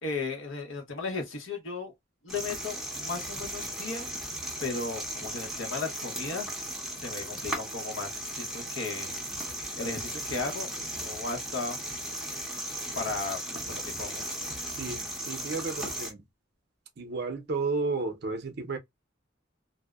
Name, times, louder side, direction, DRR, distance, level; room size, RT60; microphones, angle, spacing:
voice 1, 0.0-1.9 2.2-4.1 4.6-6.6 7.0-9.1 9.8-11.8 12.9-14.3, left 4 dB, 80° left, 1.0 m, -35 dB
sound 1, 2.3-16.1, right 1 dB, ahead, 0.6 m, -36 dB
voice 2, 14.8-16.2 17.0-18.8, right 3 dB, 55° right, 0.6 m, -32 dB
2.6 x 2.1 x 2.2 m
head